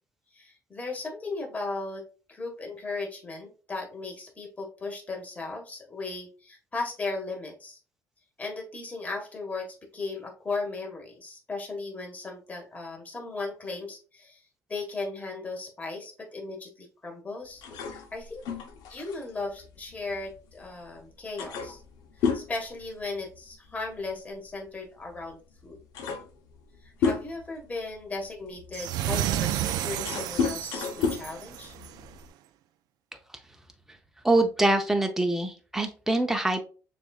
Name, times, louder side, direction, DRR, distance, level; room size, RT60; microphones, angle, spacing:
voice 1, 0.3-7.8 8.4-9.7 9.9-14.4 14.7-17.6 17.9-18.4 18.9-21.8 22.2-25.8 26.8-31.7, left 3 dB, 25° left, 0 dB, 1.5 m, -36 dB
sound 1, 17.6-20.6 21.0-21.1 21.4-23.6 23.8-24.1 25.1-25.2 25.6-27.6 28.2-32.3, left 5 dB, 80° left, 0.8 m, -32 dB
sound 2, 28.7-32.0, right 11 dB, 80° right, 0.4 m, -31 dB
voice 2, 34.2-36.6, right 2 dB, 5° right, 5 dB, 0.7 m, -24 dB
6.7 x 2.6 x 2.4 m, 0.36 s
cardioid pair, 90°, 7 cm